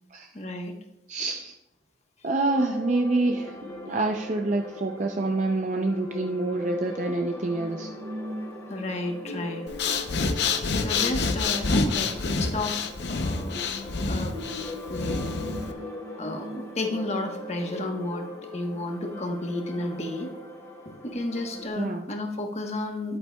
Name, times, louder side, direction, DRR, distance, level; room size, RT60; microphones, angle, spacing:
voice 1, 0.3-0.7 8.7-9.7 10.8-12.8 13.1-13.6 14.0-14.3 14.9-15.2 15.6-15.8 16.2-20.3 20.8-23.2, left 1 dB, 35° left, 3 dB, 1.1 m, -32 dB
voice 2, 1.1-1.6 2.2-3.6 3.8-7.9 21.8-22.0, right 2 dB, 40° right, 3 dB, 0.5 m, -27 dB
sound 1, 2.5-21.7, left 1 dB, 20° left, 2.8 m, -39 dB
Breathing, 9.7-15.7, left 4 dB, 65° left, 0.7 m, -27 dB
11.0 x 8.5 x 2.3 m, 0.85 s
head